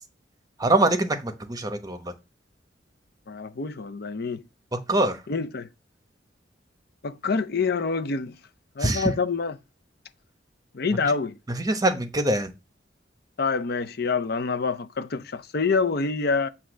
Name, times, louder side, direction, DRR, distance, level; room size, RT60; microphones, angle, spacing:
voice 1, 0.6-2.1 4.7-5.2 8.8-9.1 11.0-11.1 11.5-12.5, right 2 dB, 20° right, 1.1 m, -24 dB
voice 2, 3.3-4.4 5.3-5.7 7.0-8.4 8.8-9.5 10.7-11.4 13.4-16.5, left 4 dB, 60° left, 0.7 m, -26 dB
8.1 x 2.9 x 6.2 m
head